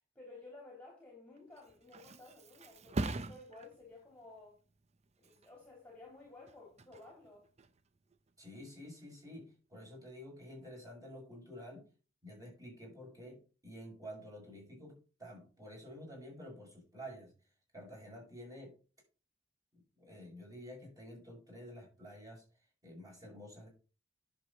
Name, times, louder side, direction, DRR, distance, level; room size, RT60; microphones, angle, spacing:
voice 1, 0.1-4.6 5.2-7.5, left 2 dB, 5° left, 3.1 m, -54 dB
Thump thud, 1.4-8.8 9.2-9.7, right 2 dB, 35° right, 0.6 m, -45 dB
voice 2, 8.4-11.8 12.2-17.3 17.7-18.7 19.7-22.4 22.8-23.7, equal, 20° right, 6.4 m, -50 dB
10.5 x 7.0 x 4.0 m
head